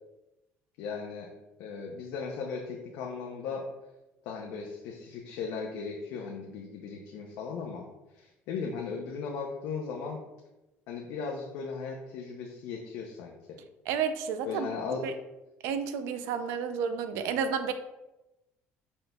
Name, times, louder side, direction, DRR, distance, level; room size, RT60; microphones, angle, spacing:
voice 1, 0.8-1.3 1.6-3.7 4.2-7.8 8.1-10.2 10.9-13.4 14.5-15.0, left 5 dB, 85° left, 0 dB, 0.6 m, -37 dB
voice 2, 13.9-14.7 15.0-15.1 15.6-17.7, right 7 dB, 80° right, 10 dB, 0.4 m, -31 dB
5.0 x 4.2 x 2.3 m, 0.99 s
cardioid pair, 140°, 5 cm